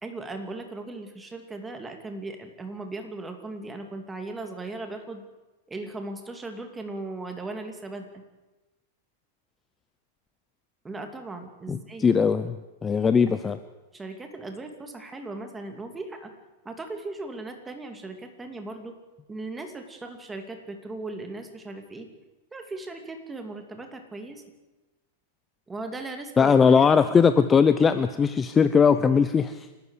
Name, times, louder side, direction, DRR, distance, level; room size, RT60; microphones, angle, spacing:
voice 1, 0.0-5.2 5.7-8.2 10.8-12.1 13.9-16.3 16.6-19.0 19.3-22.1 22.5-24.4 25.7-26.9, right 2 dB, 10° right, 5 dB, 2.7 m, -38 dB
voice 2, 11.7-12.6 12.8-13.6 26.4-29.7, left 6 dB, 15° left, 12 dB, 0.7 m, -20 dB
28.5 x 13.0 x 8.3 m, 1.1 s
supercardioid pair, 150°, 0 cm